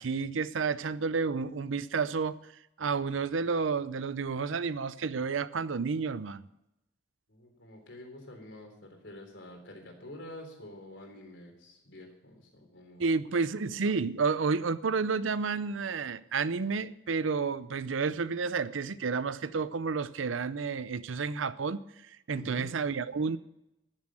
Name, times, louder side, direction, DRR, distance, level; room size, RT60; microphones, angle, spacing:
voice 1, 0.0-2.4 2.8-6.4 13.0-23.4, right 5 dB, 85° right, 0.6 m, -31 dB
voice 2, 7.3-13.0 22.3-22.7, left 1 dB, 75° left, 3.7 m, -47 dB
14.0 x 7.5 x 7.5 m
head